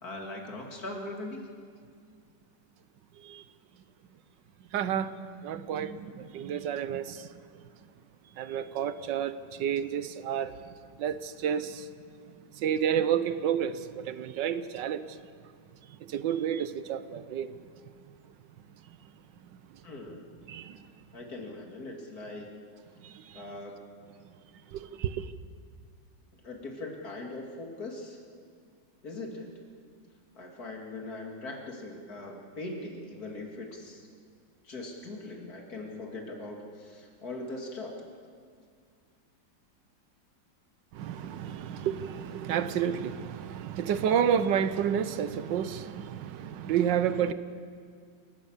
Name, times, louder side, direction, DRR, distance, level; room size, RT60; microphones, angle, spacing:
voice 1, 0.0-1.4 19.8-20.3 21.1-22.7 23.3-23.9 26.4-28.2 29.0-29.5 30.4-34.0 34.6-38.0, left 2 dB, 55° left, 3.0 m, -40 dB
voice 2, 4.7-5.1 5.4-7.4 8.3-11.9 12.5-15.2 15.9-17.6 18.9-19.0 19.4-19.8 20.5-20.9 23.0-23.6 24.2-24.3 24.7-25.3 40.9-47.3, right 8 dB, 75° right, 1.4 m, -31 dB
29.0 x 15.0 x 7.3 m
omnidirectional pair, 2.0 m